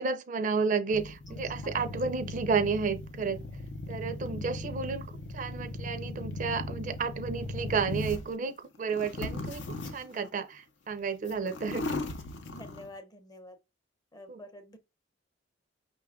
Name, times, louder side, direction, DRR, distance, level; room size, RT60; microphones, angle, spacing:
voice 1, 0.0-3.4 3.9-5.0 5.3-9.6 9.9-11.9 14.3-14.4, right 5 dB, 40° right, 0.4 m, -31 dB
sound 1, 0.9-8.3 8.9-10.3 10.9-11.0 11.3-12.9, left 2 dB, 70° left, 0.6 m, -38 dB
voice 2, 1.3-1.9 12.4-13.6 14.1-14.8, left 1 dB, 20° left, 0.6 m, -49 dB
5.3 x 2.2 x 3.5 m
head